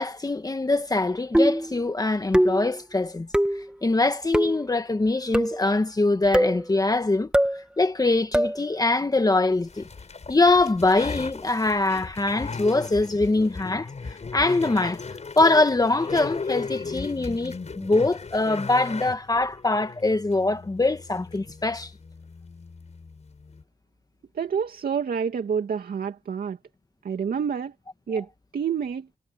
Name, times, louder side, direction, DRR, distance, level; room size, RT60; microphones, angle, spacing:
voice 1, 0.0-3.3 3.5-7.3 7.8-9.9 10.3-15.0 15.4-21.9, left 2 dB, 25° left, 1.5 m, -23 dB
sound 1, 1.3-1.7 2.3-2.7 3.3-3.7 4.3-4.6 5.3-5.7 6.3-6.6 7.3-7.6 8.3-8.6, right 1 dB, 5° right, 1.7 m, -22 dB
sound 2, 9.7-23.6, left 4 dB, 45° left, 7.1 m, -37 dB
voice 2, 24.3-26.6 27.0-27.7 28.1-28.3 28.5-29.1, right 7 dB, 70° right, 2.4 m, -28 dB
cardioid pair, 80°, 16 cm